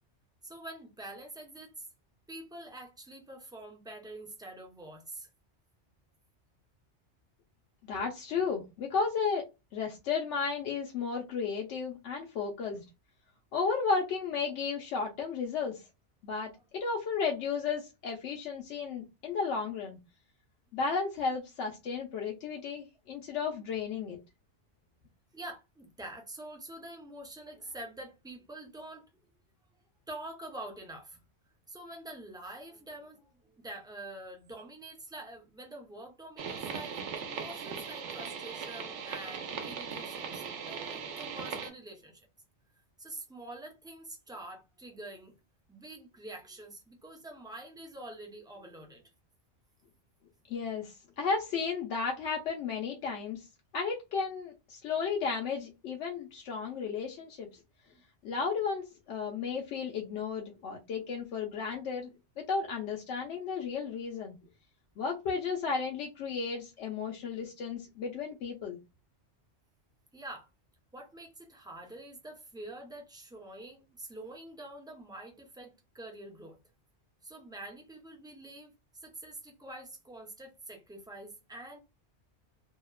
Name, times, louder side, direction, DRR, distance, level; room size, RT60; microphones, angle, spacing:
voice 1, 0.4-1.9 2.3-5.3 16.5-16.6 25.3-29.1 30.1-31.2 31.7-42.3 43.0-45.3 45.7-49.0 57.9-58.0 70.1-70.5 70.9-76.6 77.2-81.8, right 1 dB, 5° right, 0.3 m, -46 dB
voice 2, 7.8-12.8 13.5-15.8 16.2-20.0 20.7-24.2 50.5-53.5 53.7-57.5 58.2-62.1 62.4-64.4 65.0-68.8, left 5 dB, 80° left, 0.9 m, -33 dB
sound 1, 36.4-41.7, right 6 dB, 85° right, 1.0 m, -39 dB
2.7 x 2.1 x 2.2 m
omnidirectional pair, 1.2 m